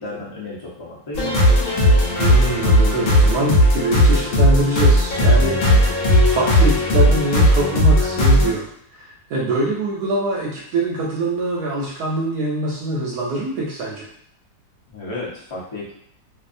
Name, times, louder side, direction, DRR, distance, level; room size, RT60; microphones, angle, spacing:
voice 1, 0.0-1.6 14.9-16.0, left 2 dB, 30° left, -6 dB, 0.5 m, -33 dB
sound 1, 1.1-8.5, equal, 65° left, 1.1 m, -16 dB
voice 2, 2.2-6.0 6.2-14.1, right 2 dB, 75° right, -3 dB, 1.0 m, -24 dB
2.6 x 2.4 x 2.5 m, 0.67 s
omnidirectional pair, 1.8 m